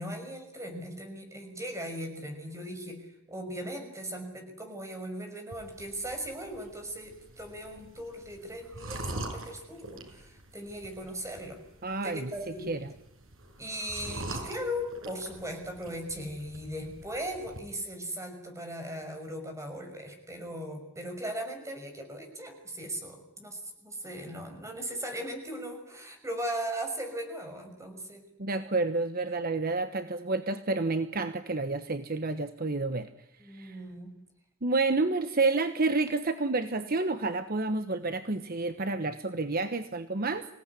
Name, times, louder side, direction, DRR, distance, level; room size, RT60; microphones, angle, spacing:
voice 1, 0.0-11.6 12.0-12.7 13.6-28.2 33.4-34.2, equal, 15° right, 5 dB, 6.0 m, -38 dB
sound 1, 5.5-17.6, right 1 dB, 80° right, 6.3 m, -44 dB
voice 2, 11.8-12.9 28.4-33.1 33.5-33.8 34.6-40.5, right 3 dB, 50° right, 9 dB, 1.2 m, -29 dB
26.5 x 18.0 x 10.0 m, 0.83 s
head